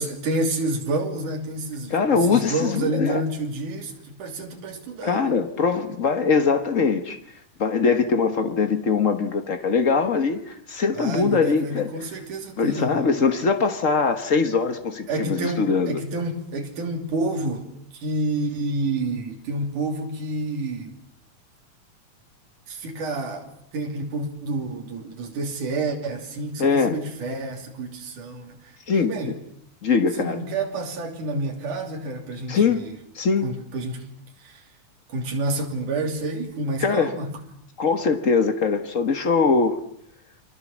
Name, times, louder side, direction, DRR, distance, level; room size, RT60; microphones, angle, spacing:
voice 1, 0.0-5.3 10.9-13.1 15.1-21.0 22.7-23.5 23.7-29.3 30.2-33.0 33.4-34.1 34.4-34.6 35.1-37.3, right 2 dB, 75° right, 4.6 m, -29 dB
voice 2, 1.9-3.2 5.0-7.2 7.6-11.9 12.6-16.0 26.6-27.0 28.9-29.4 29.8-30.4 32.5-32.8 33.1-33.5 36.8-37.1 37.8-39.8, left 5 dB, 65° left, 0.7 m, -22 dB
29.0 x 24.0 x 7.4 m
omnidirectional pair, 3.6 m